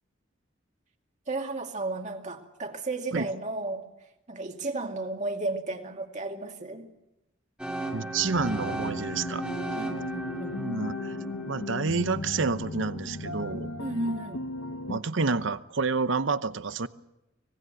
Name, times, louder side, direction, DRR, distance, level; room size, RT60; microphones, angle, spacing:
voice 1, 1.3-3.9 4.3-6.9 9.7-10.5 13.8-14.4, right 2 dB, 35° right, 2.4 m, -33 dB
sound 1, 7.6-13.5, right 2 dB, 5° right, 2.3 m, -37 dB
voice 2, 7.9-9.4 10.6-11.1 11.5-13.7 14.9-16.9, right 4 dB, 65° right, 0.9 m, -29 dB
sound 2, 8.2-15.0, left 2 dB, 80° left, 1.4 m, -37 dB
25.5 x 19.5 x 7.8 m
head